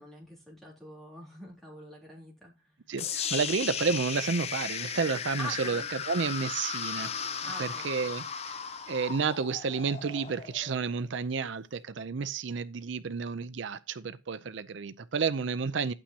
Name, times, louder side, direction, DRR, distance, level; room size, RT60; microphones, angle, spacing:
voice 1, 0.0-2.5 5.4-5.9 7.4-8.2, left 1 dB, ahead, 3.5 m, -44 dB
voice 2, 2.9-8.6 8.9-15.9, right 5 dB, 70° right, 0.5 m, -31 dB
sound 1, 3.0-11.0, left 7 dB, 30° left, 0.5 m, -36 dB
11.0 x 8.9 x 2.8 m
head